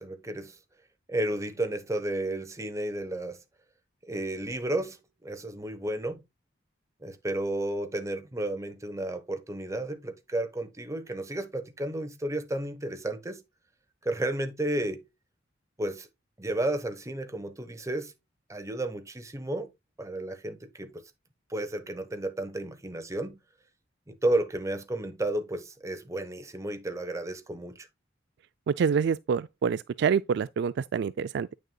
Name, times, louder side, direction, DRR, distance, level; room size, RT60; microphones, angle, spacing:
voice 1, 0.0-0.6 1.1-3.4 4.1-5.0 5.2-6.2 7.0-13.4 14.0-15.1 15.8-16.1 16.4-18.1 18.5-19.7 20.0-21.0 21.5-23.4 24.1-27.9, right 1 dB, 15° right, 1.1 m, -32 dB
voice 2, 28.7-31.5, right 6 dB, 60° right, 0.3 m, -27 dB
9.0 x 6.4 x 2.3 m
head